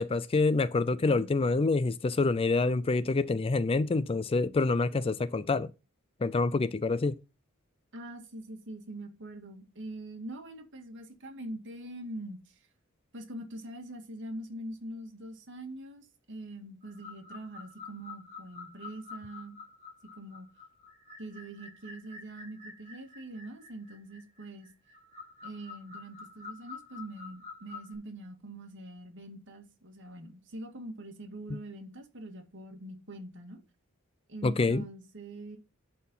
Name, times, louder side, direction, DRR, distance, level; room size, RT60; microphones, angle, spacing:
voice 1, 0.0-5.7 6.2-7.2 34.4-34.8, left 3 dB, 25° left, 0.4 m, -27 dB
voice 2, 7.9-12.6 13.1-19.6 20.2-20.5 21.2-24.7 25.4-33.6 34.3-35.6, right 1 dB, 60° right, 2.1 m, -43 dB
sound 1, 16.8-27.9, left 4 dB, 35° right, 4.7 m, -48 dB
11.0 x 4.3 x 5.4 m
head